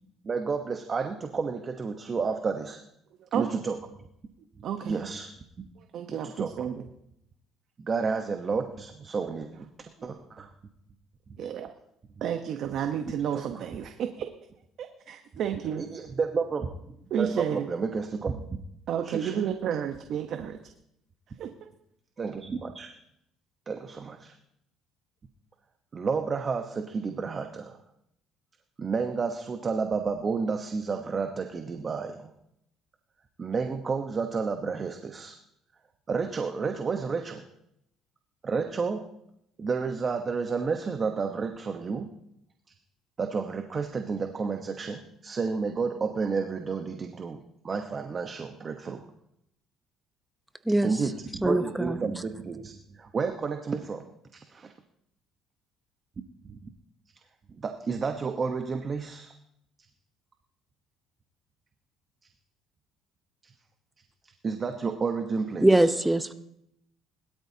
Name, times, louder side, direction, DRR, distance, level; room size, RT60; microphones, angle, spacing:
voice 1, 0.2-2.8 3.3-3.8 4.8-5.3 6.1-6.7 7.8-9.7 10.0-10.5 13.3-13.4 15.8-16.7 17.2-18.6 19.0-19.4 22.2-22.9 23.7-24.3 25.9-27.8 28.8-32.3 33.4-35.4 36.1-37.5 38.4-39.1 39.6-42.1 43.2-47.4 47.6-49.0 50.8-51.2 51.4-54.0 54.3-54.7 56.5-56.6 57.6-59.3 64.2-65.9, right 5 dB, 35° right, 5 dB, 1.1 m, -31 dB
voice 2, 3.2-3.6 4.6-5.0 5.8-6.8 11.4-11.7 12.2-14.3 14.8-16.1 17.1-17.7 18.9-20.6 21.4-21.5, right 9 dB, 60° right, 6 dB, 1.0 m, -31 dB
voice 3, 51.4-52.0 65.6-66.3, right 1 dB, 5° right, 10 dB, 0.8 m, -22 dB
20.5 x 12.5 x 2.9 m, 0.79 s
cardioid pair, 100°, 0 cm